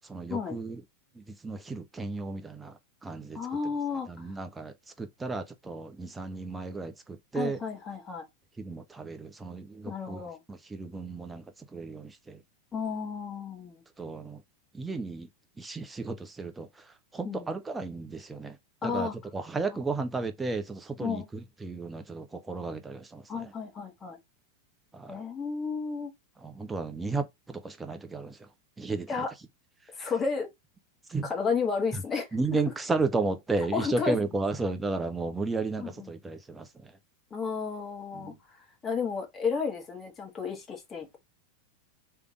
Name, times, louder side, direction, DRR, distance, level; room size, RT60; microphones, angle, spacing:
voice 1, 0.1-0.8 1.4-2.7 3.0-3.4 4.2-4.7 5.0-7.6 8.6-10.2 10.5-11.4 11.7-12.4 14.0-14.4 14.7-15.3 15.6-16.7 17.1-18.5 18.8-21.2 21.6-23.2 25.0-25.1 26.4-28.3 28.8-29.1 31.1-31.3 32.3-36.7, right 3 dB, 10° right, 0.8 m, -33 dB
voice 2, 3.3-4.3 7.3-8.3 9.9-10.4 12.7-13.8 17.2-17.5 18.8-19.2 19.7-19.8 21.0-21.3 23.3-24.2 25.1-26.1 29.1-29.3 29.9-30.5 31.2-32.7 33.6-34.2 35.8-36.1 37.3-38.6 38.8-41.2, left 5 dB, 20° left, 1.7 m, -32 dB
3.4 x 3.4 x 3.6 m
figure-of-eight pair, 90°, 0 cm